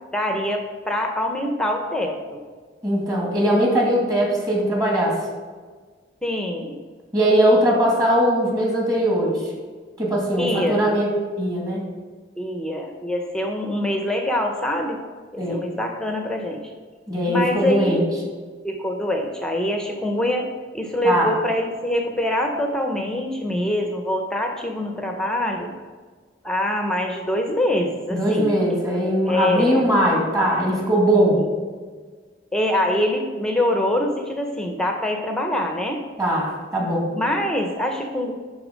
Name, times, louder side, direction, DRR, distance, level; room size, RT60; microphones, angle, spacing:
voice 1, 0.1-2.4 6.2-6.8 10.4-10.9 12.4-15.0 15.3-16.6 17.3-18.0 18.6-25.7 26.4-28.5 29.2-29.9 31.3-31.5 32.5-36.0 36.8-36.9 37.1-38.3, left 1 dB, 5° left, 3 dB, 0.7 m, -24 dB
voice 2, 2.8-5.2 7.1-9.4 10.0-11.1 11.4-11.8 15.4-15.7 17.1-18.1 21.0-21.3 28.1-31.4 36.2-37.1, right 1 dB, 20° right, -2 dB, 2.1 m, -20 dB
11.0 x 4.1 x 5.1 m, 1.5 s
head